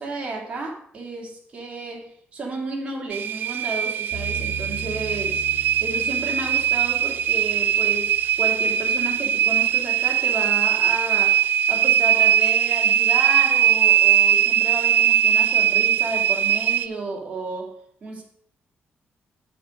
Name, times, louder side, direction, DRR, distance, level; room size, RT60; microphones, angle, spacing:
voice 1, 0.0-17.7 18.0-18.2, right 3 dB, 30° right, -1 dB, 2.5 m, -32 dB
sound 1, 3.1-16.9, right 10 dB, 60° right, 0.4 m, -20 dB
sound 2, 4.1-9.2, right 2 dB, 5° left, 3.5 m, -39 dB
7.7 x 7.7 x 5.2 m, 0.65 s
cardioid pair, 160°, 4 cm